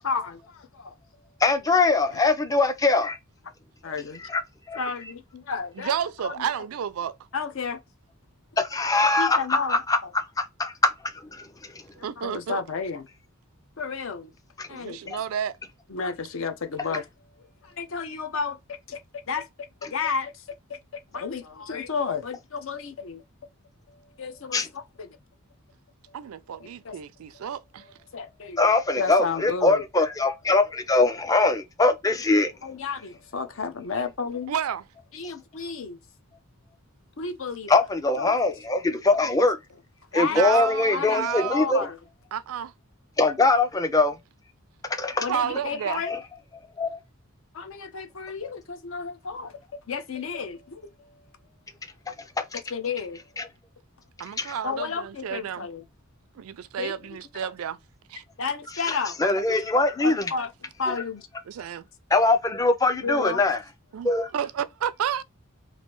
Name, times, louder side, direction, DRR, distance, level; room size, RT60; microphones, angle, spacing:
voice 1, 0.0-0.9 2.1-2.2 3.8-4.2 4.8-5.9 6.2-6.3 7.3-7.8 9.2-10.1 12.0-13.1 13.8-14.3 14.7-15.0 15.9-17.1 17.6-18.6 18.9-19.0 19.3-19.5 19.8-20.4 20.7-20.8 21.1-23.2 23.9-25.2 26.1-26.2 26.6-26.9 27.3-27.4 28.1-29.8 32.4-34.5 35.1-36.0 37.2-37.7 38.1-38.6 40.1-40.4 40.9-42.0 45.2-46.1 47.5-51.1 52.7-53.2 54.6-55.8 56.8-57.0 57.4-57.5 58.4-59.6 60.0-60.5 60.8-61.3 63.0-63.4, left 5 dB, 65° left, 0.6 m, -32 dB
voice 2, 1.4-3.2 4.2-4.4 4.7-4.8 8.6-10.9 11.3-11.5 14.6-14.7 15.1-15.2 24.5-24.7 28.6-32.5 37.7-39.6 40.1-41.9 43.2-44.2 44.9-45.2 46.1-46.2 46.8-47.0 52.1-52.6 53.4-53.5 54.4-54.5 58.9-60.3 62.1-63.6 64.0-64.3, left 3 dB, 15° left, 0.4 m, -22 dB
voice 3, 5.8-7.2 12.0-12.6 14.7-15.6 26.1-27.8 34.5-34.8 40.3-41.8 42.3-42.7 45.3-46.0 54.2-55.7 56.4-57.8 58.1-58.2 61.5-61.8 63.9-65.2, right 8 dB, 80° right, 0.4 m, -31 dB
3.1 x 2.5 x 2.9 m
head